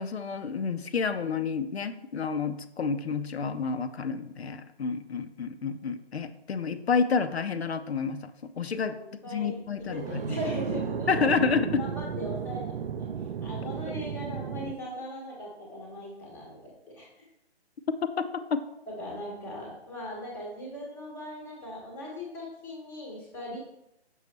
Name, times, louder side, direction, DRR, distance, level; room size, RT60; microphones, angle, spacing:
voice 1, 0.0-8.3 8.6-9.0 9.3-10.4 11.1-11.8 18.2-18.6, left 5 dB, 75° left, 9 dB, 0.5 m, -29 dB
voice 2, 8.9-11.5 11.8-13.1 13.4-17.2 18.9-23.6, equal, 5° left, -2 dB, 0.8 m, -39 dB
sound 1, 9.8-14.7, right 7 dB, 60° right, 0.5 m, -34 dB
6.2 x 5.3 x 3.2 m, 0.83 s
figure-of-eight pair, 145°, 32 cm